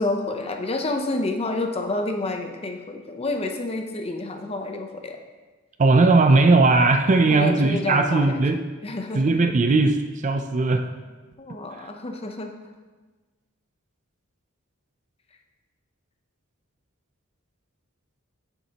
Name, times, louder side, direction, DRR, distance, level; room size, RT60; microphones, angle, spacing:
voice 1, 0.0-5.2 7.3-8.4 8.8-9.2 11.4-12.7, left 2 dB, 30° left, 4 dB, 0.7 m, -29 dB
voice 2, 5.8-8.6 9.1-10.9 11.8-11.9, right 3 dB, 35° right, 7 dB, 0.5 m, -18 dB
8.5 x 7.3 x 2.9 m, 1.3 s
head